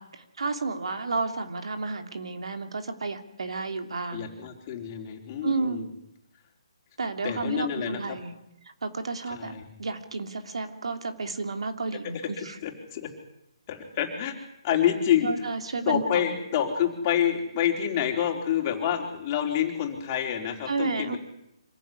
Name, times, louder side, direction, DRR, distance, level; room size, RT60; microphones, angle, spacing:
voice 1, 0.0-4.3 5.4-5.9 7.0-8.3 8.8-12.5 15.2-16.3 20.7-21.2, right 3 dB, 75° right, 7 dB, 3.0 m, -31 dB
voice 2, 4.1-5.8 7.2-8.2 9.3-9.6 12.4-13.1 13.7-14.3 14.6-15.5 15.9-21.2, left 9 dB, 30° left, 2 dB, 4.3 m, -27 dB
25.5 x 15.5 x 9.8 m, 0.84 s
hypercardioid pair, 155°, 3 cm